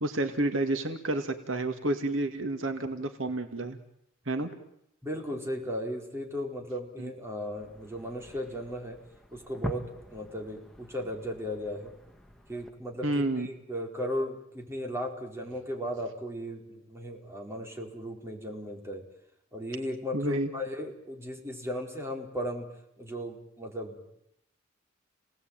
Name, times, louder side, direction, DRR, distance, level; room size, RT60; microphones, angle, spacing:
voice 1, 0.0-3.8 4.3-4.5 7.0-7.1 13.0-13.5 20.1-20.5, right 2 dB, 80° right, 7 dB, 2.3 m, -30 dB
voice 2, 5.0-9.0 9.3-11.9 12.5-19.0 19.5-22.6 23.0-24.0, equal, 15° right, 1 dB, 4.8 m, -36 dB
sound 1, 7.5-12.7, equal, ahead, 1.9 m, -44 dB
30.0 x 19.0 x 9.2 m, 0.78 s
head